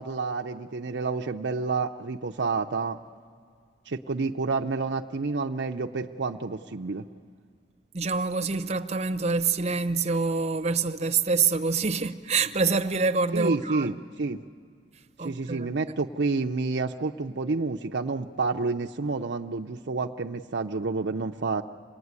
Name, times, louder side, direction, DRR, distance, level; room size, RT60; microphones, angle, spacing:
voice 1, 0.0-3.0 3.8-7.1 13.3-14.4 15.2-21.6, right 4 dB, 65° right, 0.6 m, -29 dB
voice 2, 7.9-13.9 15.2-15.7, right 4 dB, 35° right, 0.8 m, -26 dB
26.5 x 19.5 x 9.6 m
head